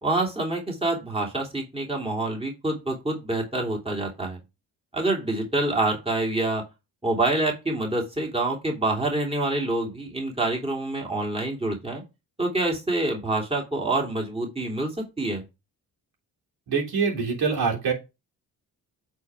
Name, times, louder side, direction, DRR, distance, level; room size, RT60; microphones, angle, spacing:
voice 1, 0.0-4.4 4.9-6.6 7.0-12.0 12.4-15.4, right 2 dB, 15° right, 0 dB, 2.9 m, -26 dB
voice 2, 16.7-17.9, right 5 dB, 75° right, 0 dB, 3.2 m, -24 dB
8.2 x 4.4 x 4.8 m, 0.26 s
cardioid pair, 70°, 38 cm